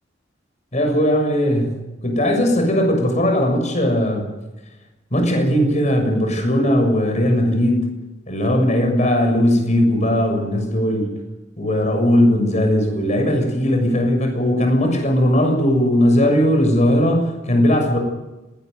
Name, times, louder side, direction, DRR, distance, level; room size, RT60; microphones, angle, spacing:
voice 1, 0.7-4.3 5.1-7.9 8.3-11.1 11.6-18.0, equal, 40° left, 4 dB, 6.8 m, -18 dB
19.0 x 18.5 x 9.5 m, 1.0 s
head